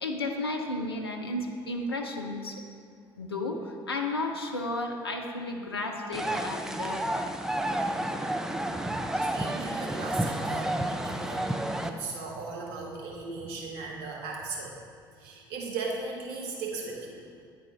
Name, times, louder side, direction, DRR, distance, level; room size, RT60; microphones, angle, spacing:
voice 1, 0.0-2.6 3.2-7.4, left 2 dB, 85° left, 2 dB, 0.5 m, -33 dB
sound 1, 6.1-11.9, right 1 dB, 5° right, 0.3 m, -30 dB
voice 2, 9.1-14.7 15.2-17.3, right 3 dB, 60° right, -2 dB, 1.1 m, -37 dB
9.3 x 3.4 x 3.3 m, 2.2 s
figure-of-eight pair, 55°, 13 cm